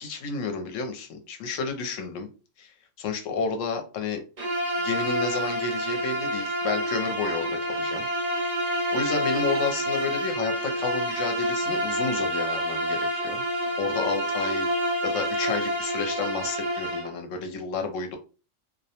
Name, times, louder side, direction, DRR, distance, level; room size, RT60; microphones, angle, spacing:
voice 1, 0.0-2.3 2.6-2.7 3.0-4.2 4.8-8.1 8.4-13.4 13.8-14.7 15.0-18.2, left 4 dB, 80° left, 5 dB, 1.0 m, -31 dB
Bowed string instrument, 4.4-17.1, equal, 45° right, 0.5 m, -28 dB
2.3 x 2.1 x 2.7 m, 0.33 s
omnidirectional pair, 1.3 m